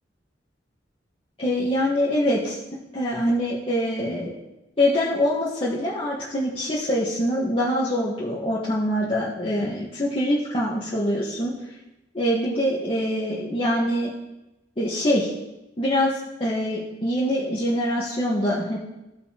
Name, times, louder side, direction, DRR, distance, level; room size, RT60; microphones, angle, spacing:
voice 1, 1.4-2.6 2.9-4.4 4.8-11.5 12.1-14.1 14.8-15.3 15.8-18.8, equal, 30° left, -7 dB, 1.3 m, -24 dB
15.5 x 5.3 x 2.9 m, 0.98 s
head